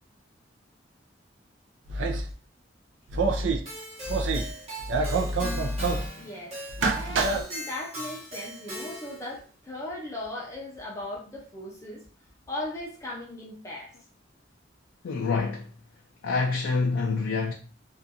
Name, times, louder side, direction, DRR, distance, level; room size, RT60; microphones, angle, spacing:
sound 1, 1.9-2.3 3.1-3.6 4.0-4.5 4.8-6.1 6.7-7.4, right 3 dB, 75° right, 0.4 m, -26 dB
Keyboard (musical), 3.7-9.3, equal, 35° right, 1.0 m, -39 dB
voice 1, 6.2-6.6 6.9-12.0 12.5-13.9, left 1 dB, 15° left, 0.5 m, -38 dB
voice 2, 15.0-15.7 16.2-17.5, left 4 dB, 75° left, 0.3 m, -27 dB
2.5 x 2.3 x 2.6 m
head